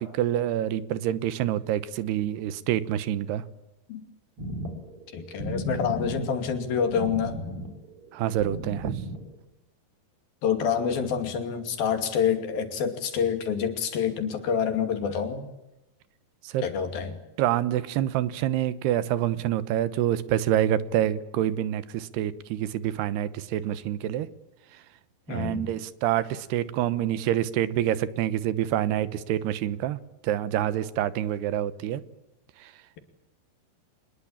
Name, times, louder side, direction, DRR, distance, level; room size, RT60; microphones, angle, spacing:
voice 1, 0.0-3.4 8.1-9.0 16.4-16.6 17.4-24.3 25.3-32.0 32.6-32.7, right 12 dB, 85° right, 15 dB, 3.1 m, -27 dB
sound 1, 4.4-9.4, equal, 35° right, 4.7 m, -35 dB
voice 2, 5.1-7.4 10.4-15.5 16.6-17.2 25.3-25.6, left 7 dB, 65° left, 7 dB, 4.3 m, -27 dB
25.5 x 21.0 x 8.8 m, 0.92 s
omnidirectional pair, 4.6 m